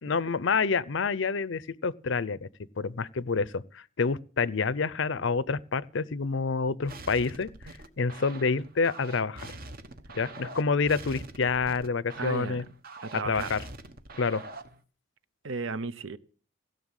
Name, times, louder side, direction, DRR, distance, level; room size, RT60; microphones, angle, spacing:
voice 1, 0.0-2.5 2.8-9.6 10.1-12.6 13.1-13.6 14.2-14.4, left 4 dB, 60° left, 0.6 m, -28 dB
sound 1, 6.9-14.8, right 2 dB, 45° right, 1.1 m, -44 dB
voice 2, 12.2-12.6 13.0-13.5 15.4-16.2, right 3 dB, 65° right, 0.7 m, -34 dB
16.5 x 6.8 x 9.0 m
head